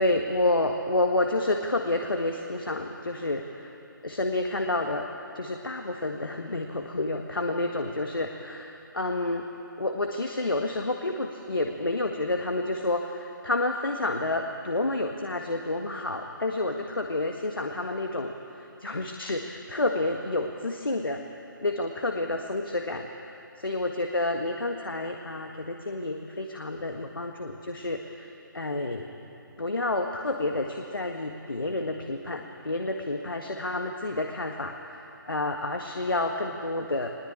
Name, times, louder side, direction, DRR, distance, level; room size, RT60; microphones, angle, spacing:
voice 1, 0.0-3.7 4.0-5.1 5.4-9.4 9.8-21.2 21.6-29.1 29.6-37.1, left 2 dB, 80° left, 3 dB, 1.8 m, -29 dB
21.0 x 21.0 x 8.8 m, 2.8 s
figure-of-eight pair, 150°, 11 cm